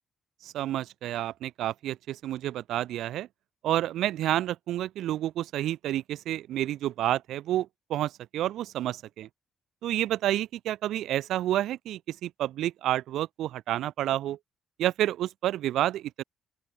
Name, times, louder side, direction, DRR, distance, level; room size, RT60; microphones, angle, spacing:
voice 1, 0.4-3.3 3.6-9.3 9.8-14.4 14.8-16.2, right 13 dB, 80° right, 0.4 m, -29 dB
open air
cardioid pair, 90°, 0 cm